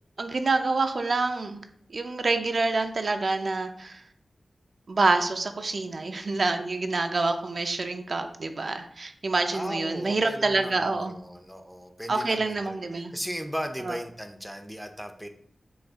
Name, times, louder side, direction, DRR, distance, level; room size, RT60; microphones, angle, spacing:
voice 1, 0.2-1.6 1.9-4.0 4.9-11.1 12.1-13.1 13.9-14.0, right 3 dB, 60° right, 6 dB, 0.4 m, -27 dB
voice 2, 9.5-15.3, equal, ahead, 6 dB, 0.5 m, -37 dB
6.2 x 2.4 x 3.4 m, 0.66 s
wide cardioid pair, 75°, 0 cm